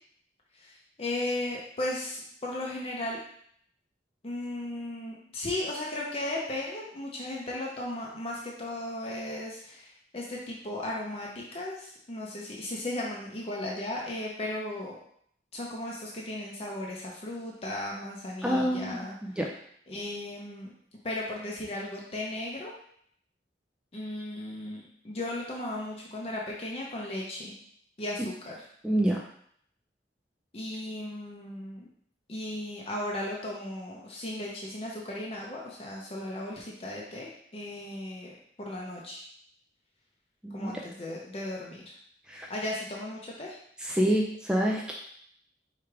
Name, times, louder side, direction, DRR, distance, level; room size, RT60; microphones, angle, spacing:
voice 1, 0.5-3.2 4.2-15.0 15.5-19.1 19.9-20.7 21.0-22.7 23.9-27.5 28.0-28.6 30.5-31.9 32.3-39.2 40.5-41.8 42.5-43.6, left 1 dB, 35° left, -3 dB, 0.6 m, -36 dB
voice 2, 18.4-19.5 28.8-29.2 40.4-40.7 42.3-42.5 43.8-44.9, equal, 5° right, -1 dB, 0.3 m, -27 dB
4.8 x 2.4 x 4.6 m, 0.66 s
head